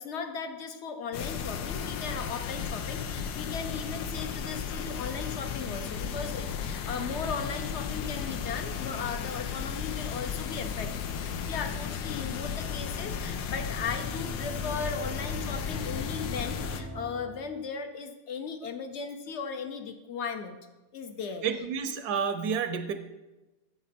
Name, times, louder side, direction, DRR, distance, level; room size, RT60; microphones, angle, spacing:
voice 1, 0.0-20.6 20.9-21.4, left 5 dB, 60° left, 8 dB, 0.7 m, -37 dB
sound 1, 1.1-16.8, left 7 dB, 85° left, 1.2 m, -34 dB
sound 2, 10.8-17.6, equal, 30° right, 0.4 m, -44 dB
voice 2, 21.4-22.9, right 6 dB, 75° right, 9 dB, 1.1 m, -30 dB
8.2 x 7.1 x 4.3 m, 1.1 s
omnidirectional pair, 1.8 m